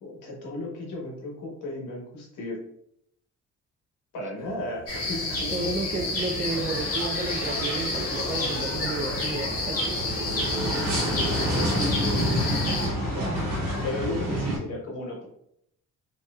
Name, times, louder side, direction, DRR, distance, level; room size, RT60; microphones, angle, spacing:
voice 1, 0.0-2.6 4.1-5.7 11.1-13.5 13.8-15.3, left 1 dB, 85° left, -1 dB, 1.1 m, -35 dB
sound 1, 4.4-5.1 5.4-14.6, equal, 55° right, 1.1 m, -30 dB
sound 2, 4.9-12.9, left 2 dB, 50° left, 1.2 m, -30 dB
voice 2, 5.5-10.3 14.3-14.6, right 3 dB, 25° right, 6 dB, 0.4 m, -32 dB
sound 3, 6.4-14.1, left 2 dB, 30° left, 0.6 m, -38 dB
3.1 x 2.9 x 2.3 m, 0.72 s
cardioid pair, 90°, 30 cm